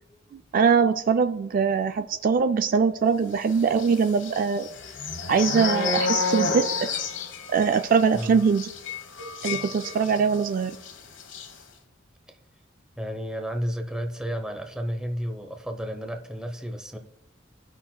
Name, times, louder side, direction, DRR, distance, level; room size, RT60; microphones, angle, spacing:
voice 1, 0.3-4.7 5.3-6.9 7.5-8.7 9.4-10.8, right 5 dB, 45° right, 8 dB, 0.3 m, -22 dB
sound 1, 3.7-10.4 10.7-10.9 11.2-11.5, left 4 dB, 70° left, 1.1 m, -30 dB
voice 2, 13.0-17.0, equal, 5° right, 4 dB, 0.7 m, -32 dB
16.5 x 5.8 x 2.2 m, 0.91 s
head